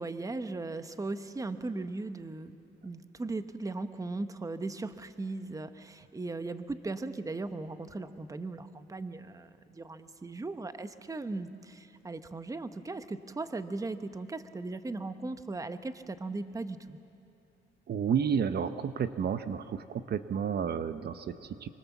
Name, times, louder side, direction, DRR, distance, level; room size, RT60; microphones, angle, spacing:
voice 1, 0.0-2.6 2.8-17.0, right 3 dB, 15° right, 10 dB, 1.0 m, -38 dB
voice 2, 17.9-21.7, right 7 dB, 50° right, 11 dB, 0.9 m, -31 dB
24.5 x 24.5 x 7.2 m, 2.8 s
cardioid pair, 85°, 21 cm